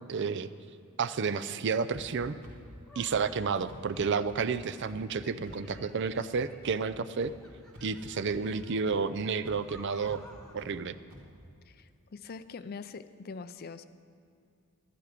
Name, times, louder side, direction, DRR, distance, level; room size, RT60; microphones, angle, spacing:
voice 1, 0.1-0.5 1.0-2.3 3.0-7.3 7.8-10.2 10.5-11.0, right 5 dB, 55° right, 14 dB, 0.4 m, -31 dB
sound 1, 1.9-2.0 2.4-2.5 3.1-3.2 3.7-3.8 4.3-4.4 4.9-5.0 5.5-5.6 6.1-6.2 6.6-6.7 7.2-7.3 7.7-8.0 8.3-8.4 8.9-9.0 9.5-9.6 10.0-10.2 10.6-10.7 11.1-11.2, equal, 90° right, 2.6 m, -48 dB
sound 2, 2.9-3.3 3.9-6.7 7.4-10.6, left 1 dB, 5° left, 1.2 m, -54 dB
voice 2, 11.7-13.8, left 4 dB, 45° left, 12 dB, 0.4 m, -43 dB
12.5 x 11.0 x 5.0 m, 2.5 s
head